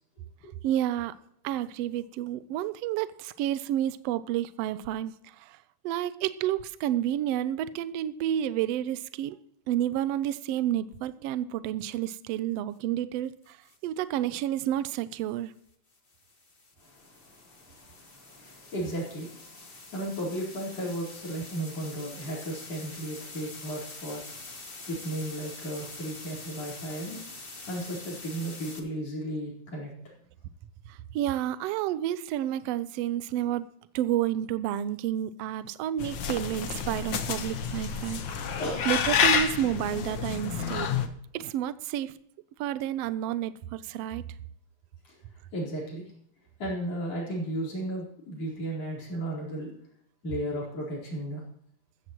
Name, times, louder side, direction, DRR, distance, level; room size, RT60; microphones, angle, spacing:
voice 1, 0.6-1.1 1.4-5.6 5.8-9.4 9.7-13.6 13.8-15.5 30.9-33.7 33.9-38.5 38.9-40.9 41.3-42.1 42.6-44.2, right 12 dB, 90° right, 14 dB, 1.4 m, -30 dB
sound 1, 13.5-13.8 15.9-28.8, left 3 dB, 30° left, 1.1 m, -45 dB
voice 2, 16.8-27.4 27.7-29.9 38.6-39.2 45.0-45.2 45.5-46.1 46.6-49.7 50.2-51.4, right 1 dB, 50° left, -4 dB, 5.3 m, -35 dB
sound 2, 36.0-41.1, left 7 dB, 70° left, 1.1 m, -29 dB
15.0 x 14.0 x 3.0 m, 0.69 s
omnidirectional pair, 3.5 m